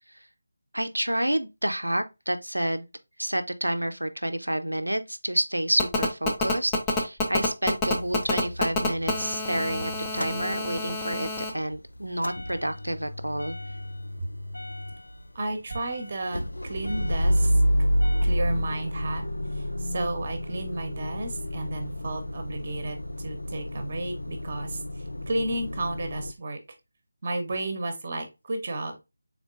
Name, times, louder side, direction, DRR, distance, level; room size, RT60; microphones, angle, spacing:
voice 1, 0.7-2.9 3.2-13.6, right 1 dB, 80° right, 0.5 m, -29 dB
Telephone, 5.8-11.5, left 3 dB, 10° left, 0.5 m, -28 dB
Motor vehicle (road) / Engine starting / Idling, 7.9-11.0 11.3-26.3, equal, 70° left, 0.3 m, -30 dB
voice 2, 15.3-17.5 18.2-19.2 19.8-24.8 25.3-26.6 27.2-29.0, right 2 dB, 35° right, 0.8 m, -32 dB
3.6 x 3.6 x 2.4 m
figure-of-eight pair, 160°, 0 cm